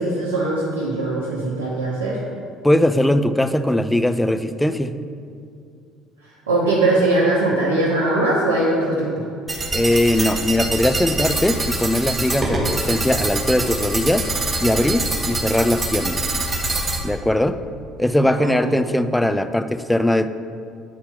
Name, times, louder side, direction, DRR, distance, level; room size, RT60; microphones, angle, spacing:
voice 1, 0.0-2.2 6.5-9.1 18.2-18.6, right 2 dB, 80° right, -5 dB, 0.7 m, -20 dB
voice 2, 2.6-4.9 9.7-14.3 14.6-16.2 17.0-17.6 18.0-20.3, left 1 dB, 10° left, 10 dB, 0.4 m, -20 dB
sound 1, 9.5-17.0, right 2 dB, 25° right, 1.1 m, -24 dB
8.1 x 4.3 x 3.7 m, 2.3 s
figure-of-eight pair, 55°, 0 cm